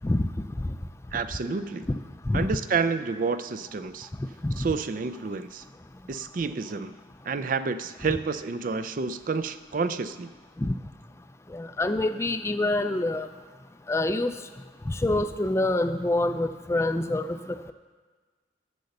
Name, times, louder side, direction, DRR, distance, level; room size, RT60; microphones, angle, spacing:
voice 1, 1.1-1.9 2.3-4.1 4.6-5.6 6.1-6.9 7.2-10.3, right 4 dB, 45° right, 12 dB, 0.4 m, -29 dB
voice 2, 11.5-13.3 13.9-14.3 14.9-17.4, left 2 dB, 15° left, 10 dB, 0.4 m, -26 dB
10.5 x 6.9 x 6.5 m, 1.4 s
head